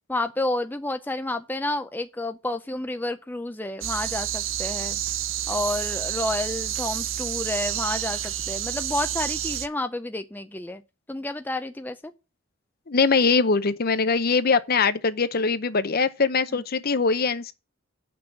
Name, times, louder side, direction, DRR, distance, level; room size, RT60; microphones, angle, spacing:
voice 1, 0.1-5.0 5.5-10.8 11.1-12.1 16.5-16.6, left 2 dB, 10° left, 0.5 m, -30 dB
sound 1, 3.8-9.7, right 11 dB, 65° right, 0.6 m, -29 dB
voice 2, 12.9-17.5, left 4 dB, 45° left, 0.7 m, -22 dB
7.8 x 6.1 x 7.2 m
head